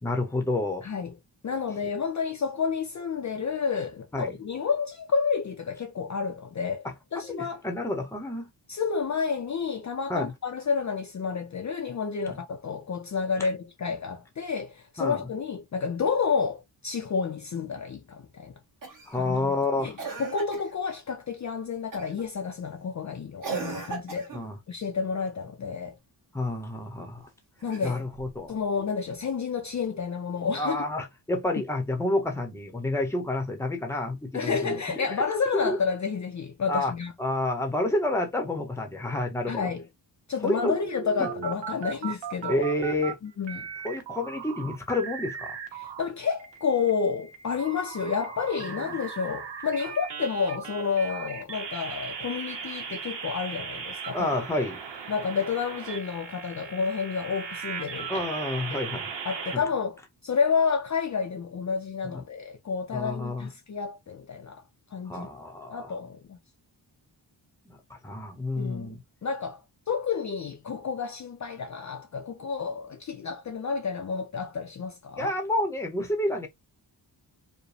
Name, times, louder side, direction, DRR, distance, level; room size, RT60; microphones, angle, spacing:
voice 1, 0.0-0.9 4.1-4.3 7.3-8.5 10.1-10.3 12.3-12.4 13.4-13.5 15.0-15.2 19.1-20.0 24.3-24.6 26.3-27.3 27.8-28.6 30.6-35.1 35.5-35.8 36.7-36.9 37.2-39.6 40.4-40.8 41.2-41.3 42.5-43.2 43.8-45.6 48.7-49.0 54.1-54.8 58.1-59.1 59.5-59.6 62.0-62.2 62.9-63.5 65.1-65.9 67.7-69.0 75.2-76.5, left 1 dB, 5° left, 0.8 m, -29 dB
voice 2, 0.8-1.1 1.4-6.9 7.1-7.6 8.7-18.5 19.2-19.9 20.2-24.3 24.7-25.9 27.6-28.0 28.5-30.8 34.3-37.1 39.5-39.8 40.3-42.7 43.2-43.7 45.8-54.3 55.1-58.2 58.7-58.8 59.2-64.6 64.9-65.3 65.7-66.4 68.6-69.0 69.2-69.6 69.9-75.3, left 5 dB, 40° left, 0.5 m, -30 dB
Cough, 18.8-19.2 20.0-20.7 21.9-22.2 23.4-24.5 27.6-28.4 29.8-29.9, right 5 dB, 45° right, 1.4 m, -37 dB
sound 1, 40.5-43.1 43.4-46.0 46.4-59.6, right 6 dB, 75° right, 0.9 m, -38 dB
4.7 x 2.1 x 3.2 m
wide cardioid pair, 180°, 44 cm